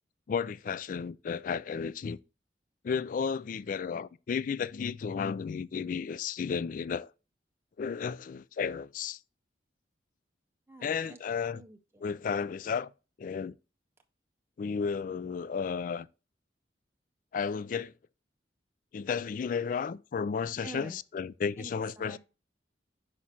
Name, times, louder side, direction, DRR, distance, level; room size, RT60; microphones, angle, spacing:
voice 1, 0.3-2.2 2.8-7.1 7.8-9.2 10.8-11.6 12.0-12.9 13.2-13.6 14.6-16.1 17.3-17.9 18.9-22.2, left 6 dB, 50° left, 0.3 m, -33 dB
voice 2, 10.7-11.2 11.5-12.0 20.6-21.0 21.6-21.7 22.0-22.2, right 2 dB, 15° right, 0.5 m, -47 dB
5.9 x 4.9 x 4.1 m
head